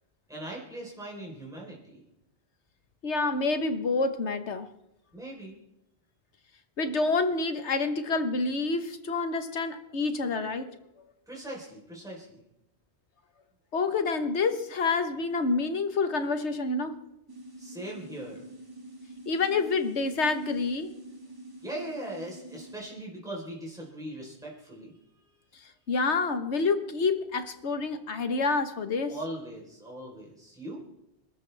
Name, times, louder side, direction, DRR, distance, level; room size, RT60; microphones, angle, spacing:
voice 1, 0.3-2.0 5.1-5.5 11.3-12.3 17.6-18.5 21.6-25.3 29.0-30.8, right 1 dB, 5° right, -4 dB, 4.0 m, -40 dB
voice 2, 3.0-4.7 6.8-10.8 13.7-17.0 19.3-20.9 25.9-29.1, left 3 dB, 85° left, 9 dB, 1.6 m, -28 dB
sound 1, 17.3-22.8, right 2 dB, 20° right, 2.3 m, -46 dB
27.5 x 13.0 x 3.5 m, 0.82 s
omnidirectional pair, 1.1 m